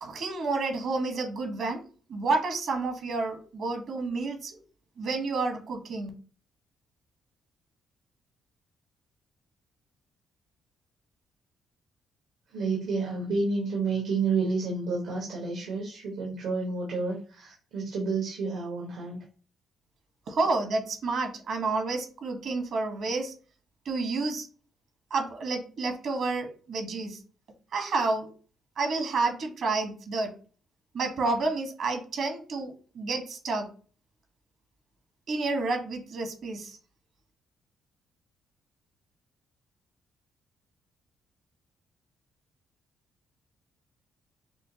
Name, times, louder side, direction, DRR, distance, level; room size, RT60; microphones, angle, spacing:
voice 1, 0.0-1.8 2.1-4.6 5.0-6.1 20.3-23.3 23.8-24.5 25.1-27.2 27.7-28.3 28.8-30.3 30.9-33.7 35.3-36.8, right 3 dB, 65° right, 5 dB, 1.2 m, -30 dB
voice 2, 12.5-19.2, right 4 dB, 90° right, -3 dB, 1.3 m, -30 dB
6.1 x 2.1 x 2.8 m, 0.39 s
cardioid pair, 90°, 0 cm